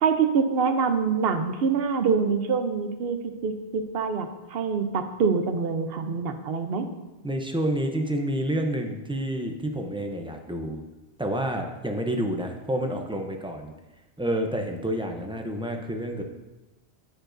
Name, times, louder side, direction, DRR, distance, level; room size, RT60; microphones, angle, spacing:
voice 1, 0.0-3.2 3.4-6.9, right 5 dB, 65° right, 7 dB, 0.9 m, -25 dB
voice 2, 7.2-10.8 11.2-13.7 14.2-16.2, right 1 dB, 10° right, 3 dB, 0.4 m, -29 dB
13.0 x 4.9 x 2.6 m, 1.1 s
omnidirectional pair, 1.1 m